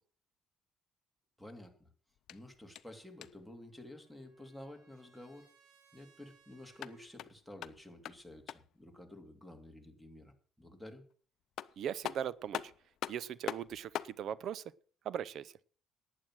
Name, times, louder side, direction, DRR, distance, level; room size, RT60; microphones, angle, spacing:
voice 1, 1.4-1.9 2.3-5.5 5.9-11.0, left 1 dB, ahead, 2.8 m, -51 dB
sound 1, 2.2-3.6 6.6-8.8 11.1-11.2 11.6-14.2, left 11 dB, 70° left, 0.5 m, -44 dB
Trumpet, 3.3-7.2, right 6 dB, 85° right, 6.7 m, -68 dB
voice 2, 11.8-12.7 13.1-14.6 15.0-15.5, right 9 dB, 65° right, 0.6 m, -39 dB
11.5 x 9.4 x 6.1 m
cardioid pair, 90°, 0 cm